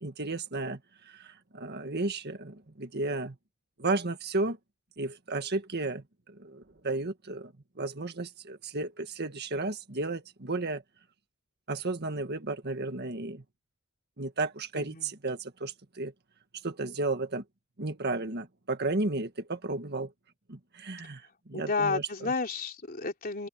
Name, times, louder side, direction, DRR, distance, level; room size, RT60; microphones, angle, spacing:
voice 1, 0.0-3.4 3.8-4.6 5.0-6.0 6.3-7.5 7.8-10.8 11.7-13.4 14.2-16.1 16.6-17.4 17.8-20.1 20.5-22.3, right 2 dB, 50° right, 1.7 m, -33 dB
voice 2, 14.7-15.1 21.5-23.5, left 4 dB, 45° left, 3.4 m, -31 dB
open air
head